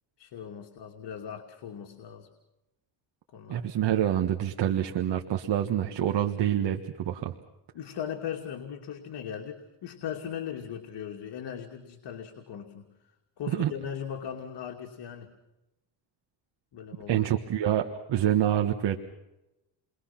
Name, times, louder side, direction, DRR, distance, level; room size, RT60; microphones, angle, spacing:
voice 1, 0.2-2.3 3.3-3.7 7.7-12.9 13.4-15.3 16.7-17.3, left 8 dB, 60° left, 2 dB, 2.7 m, -38 dB
voice 2, 3.5-7.3 13.5-13.7 17.1-19.0, right 11 dB, 65° right, 4 dB, 1.5 m, -27 dB
30.0 x 23.0 x 5.9 m, 0.95 s
cardioid pair, 115°, 45 cm